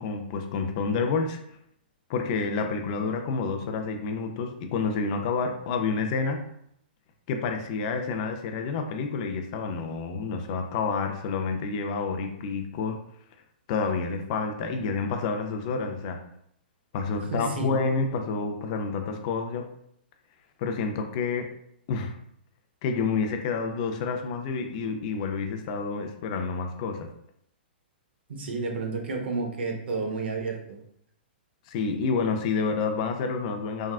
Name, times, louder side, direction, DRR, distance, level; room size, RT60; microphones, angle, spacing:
voice 1, 0.0-1.4 2.1-6.4 7.3-13.0 13.7-16.2 16.9-19.6 20.6-21.5 21.9-22.2 22.8-27.1 31.7-33.9, left 4 dB, 40° left, 5 dB, 0.4 m, -29 dB
voice 2, 17.3-17.7 28.3-30.8, right 3 dB, 75° right, 2 dB, 0.7 m, -31 dB
3.5 x 2.2 x 2.4 m, 0.71 s
hypercardioid pair, 145°, 6 cm